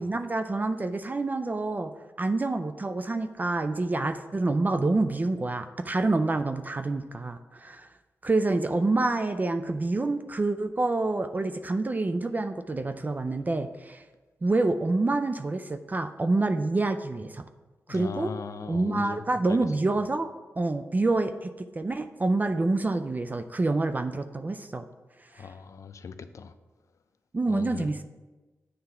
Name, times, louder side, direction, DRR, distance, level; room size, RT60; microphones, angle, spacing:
voice 1, 0.0-1.9 2.2-7.9 8.2-14.0 14.4-17.4 17.9-18.3 18.7-20.3 20.6-21.5 21.8-24.9 25.3-25.5 27.3-28.0, right 2 dB, 30° right, 0.4 m, -27 dB
voice 2, 17.9-19.6 25.3-26.5 27.5-27.9, left 5 dB, 65° left, 0.5 m, -39 dB
7.7 x 3.4 x 5.6 m
cardioid pair, 60°, 6 cm